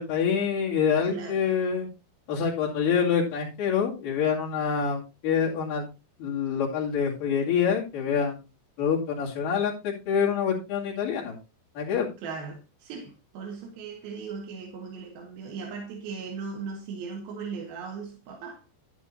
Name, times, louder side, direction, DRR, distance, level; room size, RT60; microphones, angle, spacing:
voice 1, 0.0-1.9 2.3-5.9 6.2-8.4 8.8-11.4 11.8-12.1, left 7 dB, 70° left, 4.1 m, -26 dB
voice 2, 1.0-1.6 12.2-18.6, right 5 dB, 90° right, 3.3 m, -38 dB
10.5 x 10.5 x 2.7 m
omnidirectional pair, 4.2 m